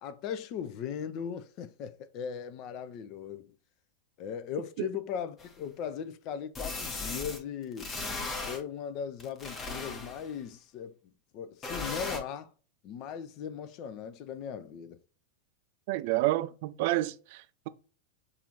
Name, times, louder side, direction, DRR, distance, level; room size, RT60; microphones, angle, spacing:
voice 1, 0.0-3.5 4.2-7.9 8.4-11.0 11.3-12.5 12.8-15.0, left 8 dB, 40° left, 0.4 m, -38 dB
sound 1, 5.4-5.5 6.5-7.4 7.8-8.6 9.2-10.3 11.6-12.2, left 3 dB, 20° left, 0.9 m, -37 dB
voice 2, 15.9-17.7, right 17 dB, 50° right, 0.3 m, -29 dB
6.8 x 2.5 x 2.8 m
figure-of-eight pair, 90°, 0 cm